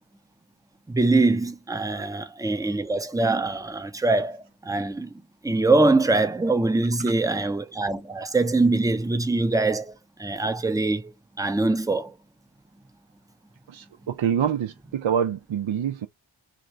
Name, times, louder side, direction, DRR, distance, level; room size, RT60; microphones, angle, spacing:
voice 1, 0.9-5.1 5.4-12.1, right 2 dB, 10° right, 0.6 m, -23 dB
voice 2, 13.7-16.1, right 8 dB, 75° right, 0.6 m, -26 dB
2.9 x 2.6 x 4.3 m
wide cardioid pair, 75°, 48 cm